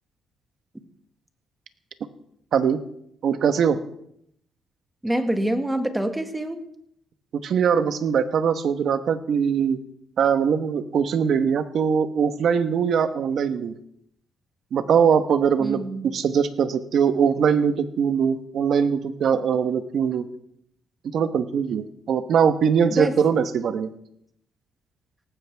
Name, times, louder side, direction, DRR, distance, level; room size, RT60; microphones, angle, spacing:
voice 1, 2.5-2.8 3.2-3.8 7.3-9.8 10.2-13.7 14.7-20.3 21.0-23.9, right 7 dB, 65° right, 10 dB, 1.2 m, -22 dB
voice 2, 5.0-6.6 15.6-16.1 22.9-23.1, right 1 dB, 10° right, 6 dB, 1.9 m, -26 dB
18.0 x 15.5 x 3.5 m, 0.72 s
cardioid pair, 90°, 0 cm